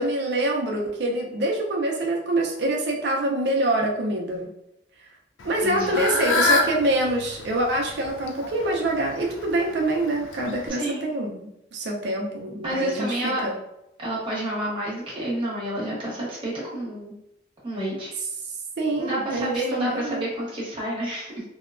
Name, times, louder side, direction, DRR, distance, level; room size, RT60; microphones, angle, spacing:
voice 1, 0.0-4.5 5.4-13.6 18.8-20.3, right 1 dB, 60° right, 1 dB, 0.5 m, -25 dB
Fowl / Bird, 5.4-10.7, left 3 dB, 80° left, 0.4 m, -28 dB
voice 2, 5.6-6.0 10.8-11.1 12.6-13.4 14.0-17.1 17.6-18.1 19.0-21.4, right 1 dB, 25° right, -7 dB, 0.9 m, -29 dB
2.7 x 2.2 x 2.4 m, 0.84 s
head